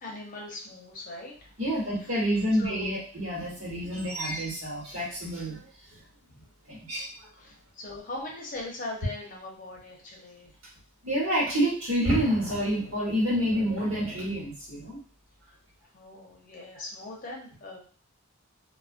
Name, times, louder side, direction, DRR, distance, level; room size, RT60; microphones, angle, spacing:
voice 1, 0.0-1.5 2.6-3.0 6.3-6.5 7.4-10.5 15.9-17.8, left 2 dB, 40° left, -2 dB, 0.7 m, -40 dB
voice 2, 1.6-5.6 6.7-7.1 11.0-15.0 16.7-16.8, equal, 65° right, -5 dB, 1.2 m, -28 dB
2.3 x 2.1 x 2.4 m, 0.43 s
head